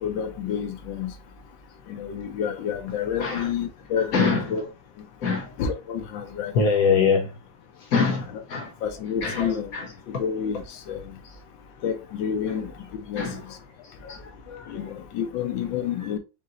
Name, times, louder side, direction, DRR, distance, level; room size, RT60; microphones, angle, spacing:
voice 1, 0.0-1.1 1.9-4.6 5.6-6.8 8.3-8.4 8.8-9.7 10.1-11.1 11.8-12.7 13.1-13.2 14.7-16.2, left 8 dB, 85° left, 1.5 m, -29 dB
voice 2, 4.1-4.4 5.2-5.5 6.5-7.3 7.9-8.7 9.2-9.8 13.2-13.4 14.1-14.7, left 5 dB, 65° left, 0.9 m, -24 dB
5.4 x 2.8 x 2.5 m
omnidirectional pair, 2.0 m